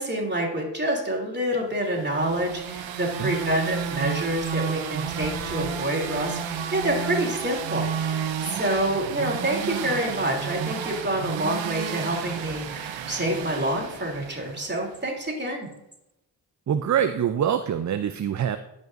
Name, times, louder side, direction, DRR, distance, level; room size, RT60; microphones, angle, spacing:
voice 1, 0.0-15.7, right 1 dB, 25° right, -1 dB, 3.1 m, -27 dB
sound 1, 1.9-14.8, right 7 dB, 85° right, 0.8 m, -32 dB
voice 2, 16.7-18.6, right 9 dB, 40° right, 9 dB, 0.5 m, -24 dB
13.5 x 5.4 x 2.6 m, 0.88 s
supercardioid pair, 45°, 45 cm